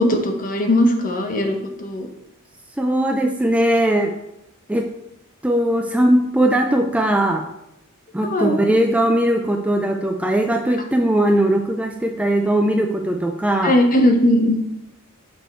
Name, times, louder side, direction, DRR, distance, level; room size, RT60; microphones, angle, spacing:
voice 1, 0.0-2.1 8.2-8.6 13.6-14.5, left 1 dB, 40° left, 4 dB, 1.0 m, -18 dB
voice 2, 2.8-4.1 4.7-4.9 5.4-7.5 8.1-13.7, right 1 dB, 5° right, 3 dB, 0.4 m, -19 dB
6.4 x 5.3 x 4.5 m, 0.85 s
head